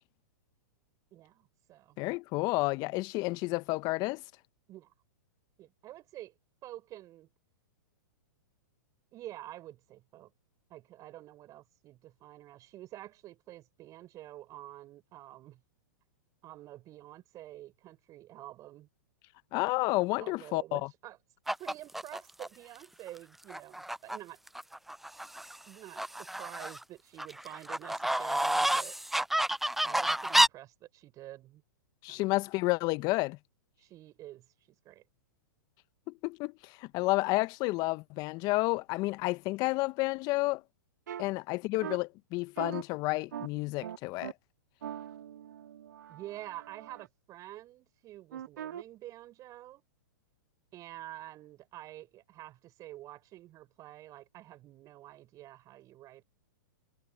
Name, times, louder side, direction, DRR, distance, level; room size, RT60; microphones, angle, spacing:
voice 1, 1.1-2.0 4.7-4.9 5.6-6.3 6.6-7.3 9.1-10.3 10.7-15.6 16.4-18.9 20.2-21.2 21.6-24.4 25.7-28.9 29.8-31.6 32.1-32.3 33.8-35.0 41.1-41.2 46.1-49.8 50.7-56.2, right 15 dB, 35° right, 6.5 m, -48 dB
voice 2, 2.0-4.2 19.5-20.8 32.0-33.4 36.2-40.6 41.2-44.3, left 22 dB, 40° left, 1.1 m, -30 dB
sound 1, 21.5-22.5 23.1-23.2 23.5-24.2 24.5-25.6 26.0-26.8 27.2-30.5, right 1 dB, ahead, 0.4 m, -29 dB
sound 2, 41.1-41.2 41.8-42.0 42.6-42.8 43.3-43.5 43.8-44.3 44.8-47.1 48.3-48.8, right 10 dB, 70° right, 4.3 m, -41 dB
hypercardioid pair, 115°, 10 cm